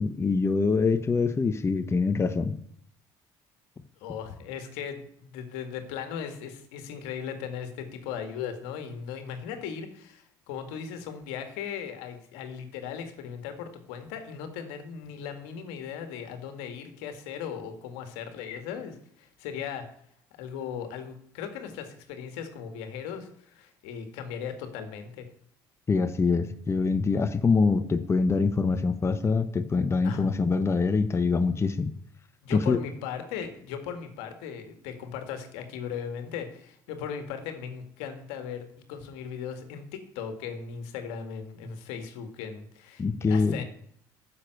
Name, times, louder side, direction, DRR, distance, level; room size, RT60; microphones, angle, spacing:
voice 1, 0.0-2.5 25.9-31.9 32.5-32.8 43.0-43.6, left 4 dB, 25° left, 9 dB, 1.0 m, -24 dB
voice 2, 4.0-19.8 20.4-25.3 30.0-30.3 32.4-43.6, left 7 dB, 80° left, 7 dB, 1.9 m, -38 dB
10.0 x 7.1 x 7.8 m, 0.66 s
hypercardioid pair, 70°, 10 cm